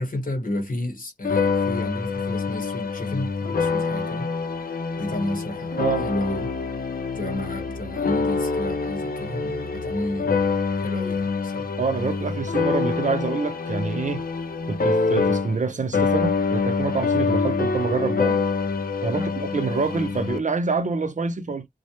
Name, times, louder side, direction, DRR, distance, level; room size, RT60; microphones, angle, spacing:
voice 1, 0.0-4.3 5.0-6.5 7.1-10.4 10.8-11.7 19.1-19.3, left 1 dB, 70° left, 1.1 m, -31 dB
sound 1, 1.2-15.7 15.9-20.4, left 4 dB, 85° left, 0.5 m, -25 dB
voice 2, 5.8-6.1 11.8-14.3 14.7-18.4 19.0-21.7, right 4 dB, 55° right, 0.6 m, -26 dB
2.1 x 2.0 x 2.9 m
cardioid pair, 45°, 15 cm